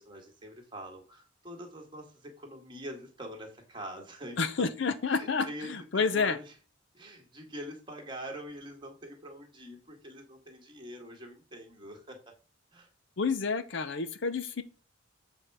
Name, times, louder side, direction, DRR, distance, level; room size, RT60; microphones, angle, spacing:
voice 1, 0.0-4.7 5.1-6.5 6.9-12.2 12.7-12.9, equal, 25° right, 2 dB, 1.8 m, -44 dB
voice 2, 4.4-6.4 13.2-14.6, left 4 dB, 60° left, 12 dB, 0.6 m, -29 dB
7.9 x 4.5 x 4.9 m, 0.35 s
head